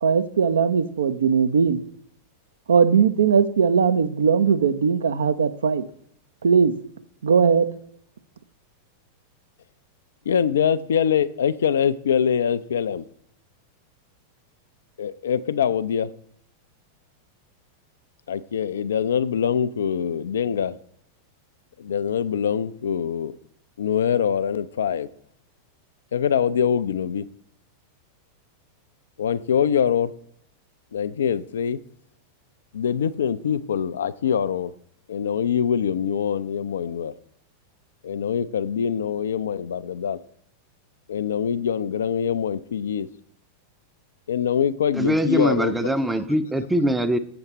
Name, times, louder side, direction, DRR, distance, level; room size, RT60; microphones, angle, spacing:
voice 1, 0.0-1.8 2.7-5.8 6.4-6.7 7.2-7.7, right 6 dB, 65° right, 0.5 m, -19 dB
voice 2, 10.3-13.1 15.0-16.1 18.3-20.8 21.8-23.3 23.8-25.1 26.1-27.3 29.2-30.1 30.9-31.8 32.7-34.7 35.1-37.1 38.0-40.2 41.1-43.1 44.3-46.2, left 8 dB, 65° left, 0.3 m, -24 dB
voice 3, 44.9-47.2, equal, 5° right, 0.5 m, -22 dB
7.2 x 6.8 x 4.0 m
figure-of-eight pair, 90°, 0 cm